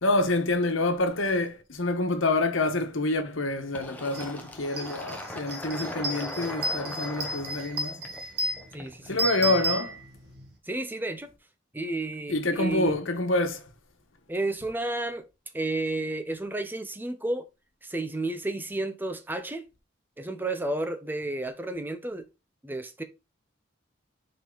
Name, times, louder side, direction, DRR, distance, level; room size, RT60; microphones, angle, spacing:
voice 1, 0.0-8.0 9.0-10.0 12.3-13.7, left 2 dB, 90° left, 1.2 m, -27 dB
Fill (with liquid), 3.7-9.1, left 1 dB, 10° left, 1.0 m, -40 dB
sound 1, 4.1-4.3 4.6-10.5, right 2 dB, 55° right, 1.8 m, -33 dB
voice 2, 8.7-9.6 10.6-11.3 11.7-13.0 14.3-15.3 15.5-17.5 17.8-19.6 20.2-22.3 22.6-23.0, right 2 dB, 10° right, 0.6 m, -32 dB
5.9 x 4.4 x 3.9 m
head